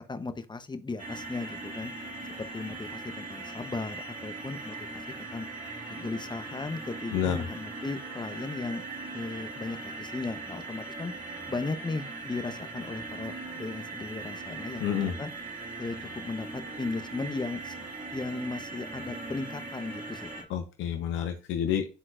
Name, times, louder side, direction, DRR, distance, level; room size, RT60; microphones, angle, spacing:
voice 1, 0.1-1.9 2.4-4.8 5.3-5.5 5.9-8.8 9.1-11.1 11.5-15.3 15.8-17.8 18.1-20.4, left 3 dB, 20° left, 11 dB, 0.8 m, -36 dB
sound 1, 1.0-20.4, right 3 dB, 40° right, 2.0 m, -40 dB
voice 2, 7.1-7.4 14.8-15.1 20.5-21.9, left 9 dB, 75° left, 5 dB, 0.8 m, -29 dB
10.0 x 3.8 x 2.4 m, 0.33 s
hypercardioid pair, 55°, 20 cm